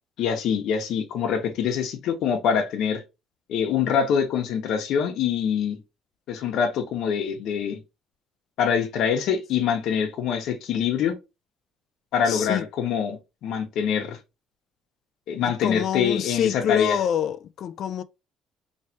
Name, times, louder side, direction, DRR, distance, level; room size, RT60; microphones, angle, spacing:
voice 1, 0.2-3.0 3.5-5.8 6.3-7.8 8.6-11.2 12.1-14.2 15.3-17.0, left 7 dB, 65° left, 1.1 m, -25 dB
voice 2, 12.3-12.6 15.6-18.0, left 9 dB, 50° left, 0.4 m, -26 dB
4.4 x 3.2 x 2.8 m
cardioid pair, 165°, 0 cm